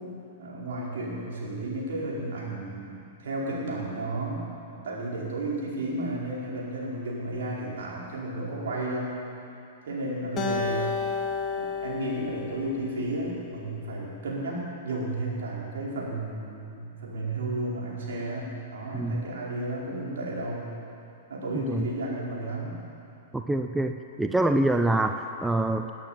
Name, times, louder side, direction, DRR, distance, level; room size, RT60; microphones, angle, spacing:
voice 1, 0.4-2.9 3.2-9.2 9.9-10.8 11.5-20.7 21.3-22.8, right 2 dB, 70° right, -4 dB, 4.7 m, -33 dB
Acoustic guitar, 10.4-13.7, left 4 dB, 25° left, 2.3 m, -32 dB
voice 2, 18.9-19.2 21.5-21.9 23.3-23.9 24.2-25.9, right 2 dB, 5° right, 6 dB, 0.6 m, -25 dB
18.5 x 9.2 x 7.5 m, 2.8 s
hypercardioid pair, 110°, 0 cm